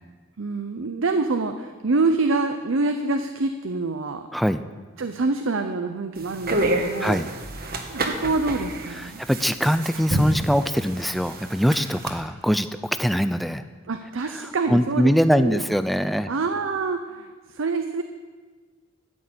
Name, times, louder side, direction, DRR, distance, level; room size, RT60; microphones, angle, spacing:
voice 1, 0.4-4.3 5.0-7.2 7.9-9.2 13.9-15.7 16.3-18.0, right 3 dB, 75° right, 7 dB, 0.7 m, -26 dB
voice 2, 4.3-4.6 7.0-7.3 9.0-12.7 13.0-13.6 14.2-16.3, equal, ahead, 11 dB, 0.4 m, -22 dB
sound 1, 6.2-12.1, right 2 dB, 50° right, 1.4 m, -29 dB
13.0 x 6.6 x 8.6 m, 1.4 s
head